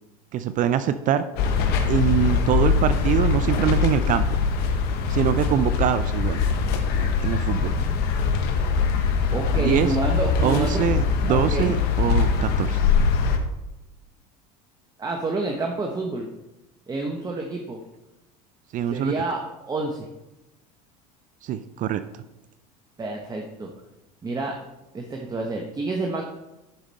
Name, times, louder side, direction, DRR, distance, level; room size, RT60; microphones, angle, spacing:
voice 1, 0.3-1.3 1.9-4.4 5.1-6.4 7.2-7.8 9.6-10.0 10.4-12.8 18.7-19.1 21.4-22.0, right 10 dB, 45° right, 12 dB, 0.5 m, -24 dB
sound 1, 1.4-13.4, left 5 dB, 60° left, 1.3 m, -22 dB
voice 2, 9.3-10.9 11.3-11.7 15.0-16.3 16.9-17.8 18.9-19.4 19.6-20.1 23.0-23.7 24.2-24.6 24.9-26.2, right 2 dB, 20° right, 2 dB, 1.2 m, -28 dB
11.5 x 5.1 x 4.3 m, 0.97 s
supercardioid pair, 95°, 18 cm